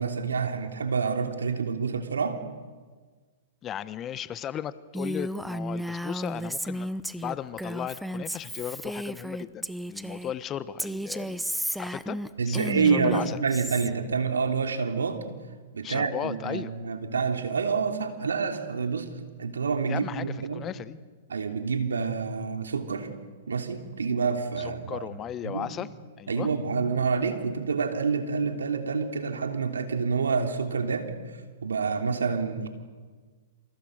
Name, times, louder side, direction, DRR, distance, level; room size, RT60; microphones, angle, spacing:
voice 1, 0.0-2.4 12.4-15.2 15.7-19.1 19.4-20.6 21.3-23.1 23.5-25.1 25.4-25.7 26.3-31.1 31.6-32.7, right 5 dB, 85° right, 5 dB, 3.2 m, -28 dB
voice 2, 3.6-7.0 7.2-11.5 11.8-12.2 12.4-13.4 15.8-16.7 19.9-21.0 24.6-25.9 26.2-26.5, left 10 dB, 25° left, 16 dB, 1.1 m, -36 dB
Female speech woman speaking, 4.9-10.3 10.8-13.9, equal, ahead, 0.9 m, -33 dB
28.5 x 27.5 x 6.6 m, 1.4 s
hypercardioid pair, 120°, 0 cm